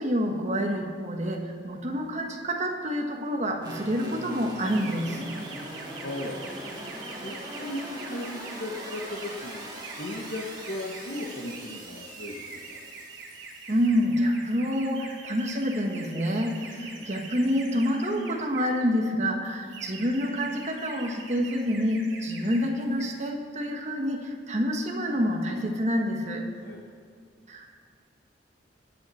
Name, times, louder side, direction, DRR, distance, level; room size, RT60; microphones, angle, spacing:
voice 1, 0.0-5.2 13.7-26.5 27.5-27.6, equal, 40° right, 2 dB, 1.4 m, -27 dB
sound 1, 3.6-13.9, right 1 dB, 25° right, 2.0 m, -41 dB
sound 2, 4.6-18.8 19.4-22.6 22.9-23.2, right 4 dB, 85° right, 2.4 m, -44 dB
voice 2, 6.0-6.4 7.2-12.8 16.9-17.0 26.6-26.8, left 1 dB, 65° left, -3 dB, 1.4 m, -37 dB
21.0 x 7.7 x 4.4 m, 2.1 s
head